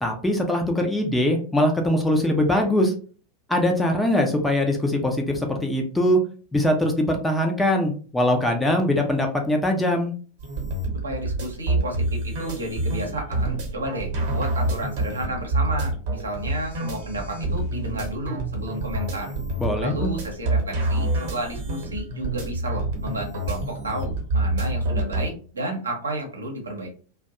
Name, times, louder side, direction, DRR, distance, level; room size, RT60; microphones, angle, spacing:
voice 1, 0.0-2.9 3.5-6.2 6.5-10.1 19.6-20.1, left 1 dB, 5° left, 2 dB, 0.5 m, -22 dB
sound 1, 10.4-25.3, right 2 dB, 50° right, 0.9 m, -27 dB
voice 2, 11.0-19.3 19.8-26.9, right 1 dB, 75° right, 2 dB, 0.8 m, -32 dB
2.6 x 2.2 x 2.5 m, 0.40 s
figure-of-eight pair, 90°, 0 cm